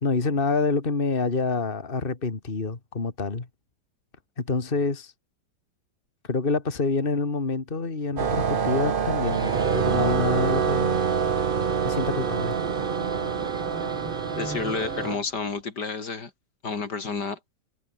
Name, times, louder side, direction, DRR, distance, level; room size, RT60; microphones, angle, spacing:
voice 1, 0.0-3.5 4.4-5.1 6.3-11.0 11.8-12.6, left 4 dB, 30° left, 2.4 m, -27 dB
sound 1, 8.2-15.2, right 6 dB, 40° right, 0.9 m, -26 dB
Guitar, 9.0-15.6, equal, ahead, 2.3 m, -42 dB
voice 2, 14.3-16.3 16.6-17.4, left 4 dB, 70° left, 3.3 m, -30 dB
omnidirectional pair, 1.9 m